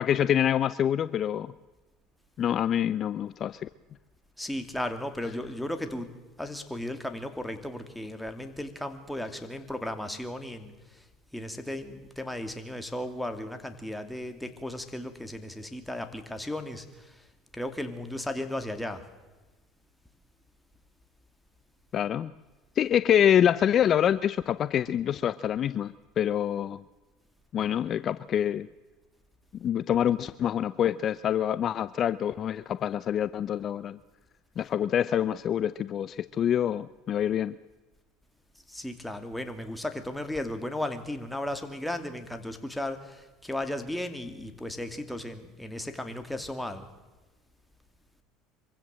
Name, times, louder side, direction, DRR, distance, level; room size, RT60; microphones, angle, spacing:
voice 1, 0.0-1.5 2.4-3.7 21.9-22.3 22.8-26.8 27.5-28.7 29.6-34.0 34.6-37.5, left 10 dB, 45° left, 16 dB, 0.6 m, -26 dB
voice 2, 4.4-6.1 6.4-11.1 11.3-17.3 17.5-19.1 38.7-46.9, left 1 dB, 5° left, 7 dB, 2.5 m, -35 dB
24.0 x 15.5 x 7.6 m, 1.2 s
supercardioid pair, 90°, 0 cm